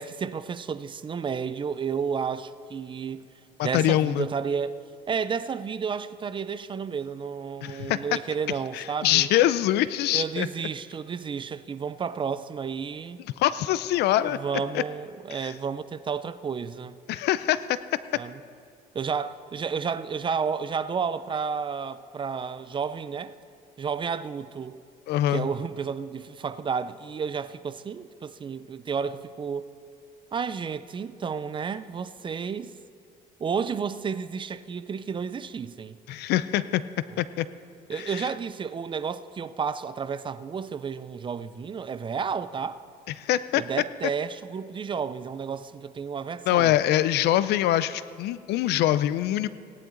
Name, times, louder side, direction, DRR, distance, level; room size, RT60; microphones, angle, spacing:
voice 1, 0.0-3.3 3.6-4.8 5.1-9.3 10.1-13.2 14.3-17.0 18.1-18.4 18.9-23.4 23.8-24.8 25.3-29.7 30.3-32.7 33.4-36.0 37.9-42.8 43.5-46.7, right 6 dB, 30° right, 0.4 m, -31 dB
voice 2, 3.6-4.3 7.6-8.0 8.7-10.5 13.4-14.4 14.7-14.8 15.3-15.5 17.1-17.8 25.1-25.5 36.1-36.8 37.2-37.5 37.9-38.3 43.2-43.6 46.5-49.5, left 13 dB, 80° left, 0.5 m, -24 dB
17.5 x 10.5 x 3.9 m
cardioid pair, 110°, 17 cm